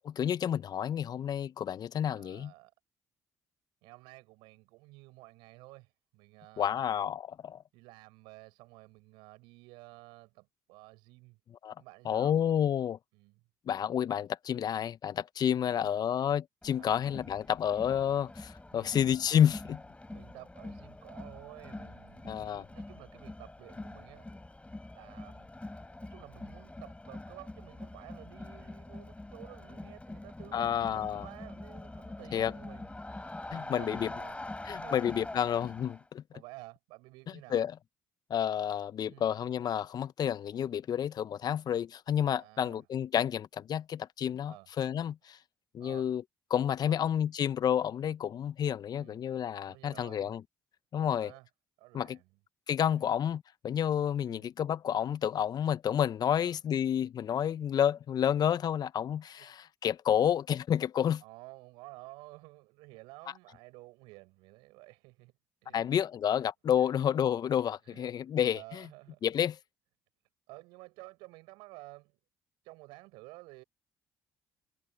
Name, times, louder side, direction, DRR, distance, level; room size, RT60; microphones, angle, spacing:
voice 1, 0.0-2.5 6.6-7.6 11.6-11.7 12.0-13.0 13.7-19.8 22.2-22.6 30.5-31.2 32.3-32.5 33.5-34.1 34.6-36.2 37.5-37.7 38.3-45.4 45.7-46.2 46.5-50.4 50.9-51.3 51.9-52.2 52.7-61.2 65.7-68.9 69.2-69.6, left 9 dB, 50° left, 1.5 m, -30 dB
voice 2, 2.1-2.7 3.8-6.8 7.7-11.4 11.8-12.4 13.1-13.4 15.5-16.1 16.8-17.0 18.7-18.9 20.1-24.4 24.9-25.5 26.0-32.9 33.4-34.5 34.7-35.0 36.3-37.6 39.1-39.3 42.4-42.8 44.5-44.7 45.8-46.1 46.8-47.0 49.0-49.2 49.7-50.3 51.0-51.5 51.8-52.3 52.9-53.1 54.2-54.5 56.3-56.6 59.5-59.6 61.2-65.3 65.6-65.9 66.8-66.9 67.8-68.1 68.5-69.3 70.5-72.2 72.6-73.6, right 23 dB, 70° right, 7.6 m, -52 dB
Crowd, 16.6-36.0, left 2 dB, 15° left, 8.0 m, -45 dB
figure-of-eight pair, 45°, 9 cm